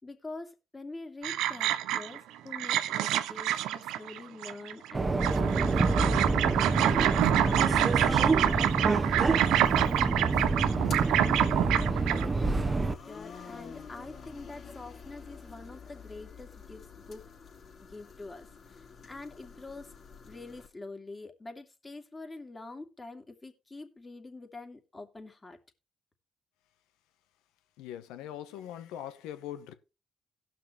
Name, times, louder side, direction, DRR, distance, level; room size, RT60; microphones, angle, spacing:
voice 1, 0.0-6.2 6.7-10.6 11.1-17.3 17.8-19.9 20.3-25.6, left 3 dB, 30° left, 2.7 m, -45 dB
sound 1, 1.2-2.2 2.5-4.9 5.2-12.2, right 12 dB, 85° right, 0.6 m, -27 dB
Subway metro underground, 4.9-12.9, right 3 dB, 40° right, 1.0 m, -27 dB
sound 2, 10.7-20.7, left 5 dB, 65° left, 3.3 m, -49 dB
voice 2, 27.8-29.7, left 11 dB, 90° left, 1.0 m, -41 dB
17.5 x 6.0 x 3.1 m
supercardioid pair, 50°, 0 cm